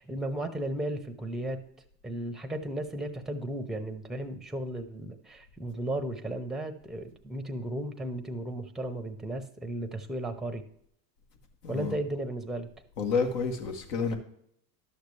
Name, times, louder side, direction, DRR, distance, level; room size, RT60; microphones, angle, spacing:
voice 1, 0.0-1.6 2.0-10.6 11.7-12.7, right 1 dB, ahead, 0.6 m, -35 dB
voice 2, 11.6-12.0 13.0-14.2, left 5 dB, 70° left, 1.7 m, -29 dB
11.5 x 6.6 x 3.3 m
hypercardioid pair, 90°, 49 cm